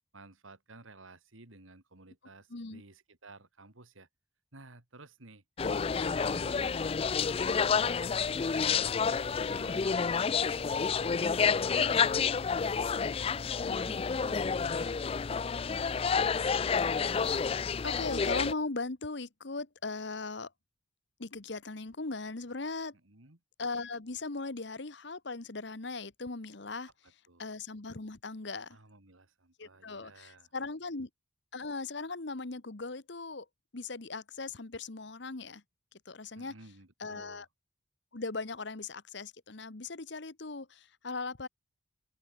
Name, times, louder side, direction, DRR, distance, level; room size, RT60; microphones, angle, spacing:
voice 1, 0.1-4.1 4.5-5.4 5.9-10.3 11.0-14.4 14.8-15.5 22.9-23.4 27.3-27.5 28.7-30.5 36.4-37.5, right 2 dB, 85° right, 2.8 m, -54 dB
voice 2, 2.5-2.8 5.6-6.0 16.9-17.0 17.8-20.5 21.2-22.9 23.6-26.9 27.4-28.8 29.6-31.1 31.5-33.5 33.7-35.6 36.1-36.5 37.0-37.5 38.1-41.5, left 3 dB, 60° left, 1.2 m, -38 dB
sound 1, 5.6-18.5, left 5 dB, 30° left, 0.3 m, -29 dB
open air
head